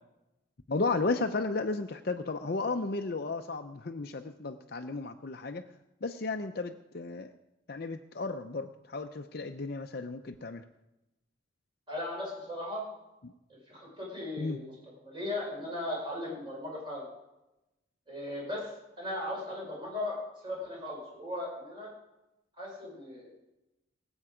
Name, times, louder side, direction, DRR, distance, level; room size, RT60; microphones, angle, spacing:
voice 1, 0.7-5.6 6.0-7.3 7.7-10.6 14.4-14.6, left 3 dB, 50° left, 6 dB, 0.6 m, -34 dB
voice 2, 11.9-12.8 13.5-14.7 15.0-17.0 18.1-18.7 19.0-20.2 20.4-21.9 22.6-23.3, left 1 dB, 25° right, -3 dB, 5.0 m, -37 dB
22.5 x 8.0 x 5.0 m, 0.95 s
head